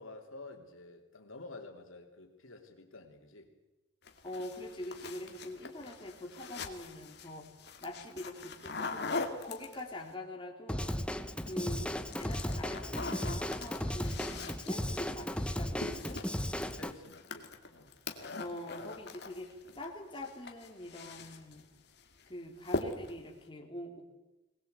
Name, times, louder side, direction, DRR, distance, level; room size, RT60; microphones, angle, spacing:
voice 1, 0.0-3.5 16.7-17.9, left 2 dB, 80° left, 3 dB, 3.2 m, -50 dB
sound 1, 4.0-10.1 11.2-11.7 12.0-19.9 20.2-21.6 22.0-22.3 22.6-23.3, left 3 dB, 55° left, 2.2 m, -42 dB
voice 2, 4.2-7.5 7.8-16.2 18.4-21.7 22.3-24.0, left 1 dB, 25° left, 1 dB, 3.1 m, -44 dB
Drum kit / Drum, 10.7-16.9, equal, 5° left, 0.9 m, -36 dB
22.0 x 19.5 x 8.2 m, 1.0 s
head